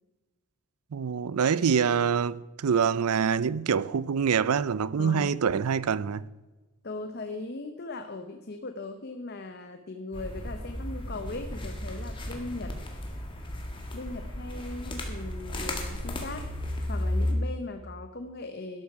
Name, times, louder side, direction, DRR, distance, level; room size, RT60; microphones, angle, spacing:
voice 1, 0.9-6.3, right 6 dB, 90° right, 0.5 m, -25 dB
voice 2, 5.0-5.4 6.8-12.8 13.9-16.5 16.9-18.8, left 2 dB, 45° left, 0.8 m, -39 dB
sound 1, 10.1-17.3, left 1 dB, 20° left, 1.9 m, -34 dB
12.5 x 12.0 x 4.7 m
head